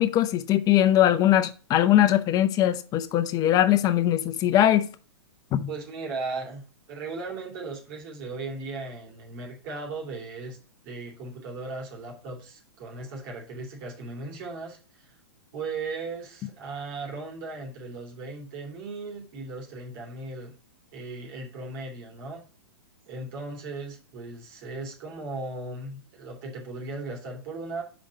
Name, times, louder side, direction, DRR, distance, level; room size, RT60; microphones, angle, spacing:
voice 1, 0.0-4.9 5.5-5.7, left 12 dB, 25° left, 0.7 m, -21 dB
voice 2, 5.7-6.6 6.9-10.6 10.8-15.1 15.5-20.5 20.9-22.4 23.1-27.8, right 3 dB, 50° right, 2.8 m, -37 dB
5.1 x 5.1 x 6.4 m
hypercardioid pair, 130°, 14 cm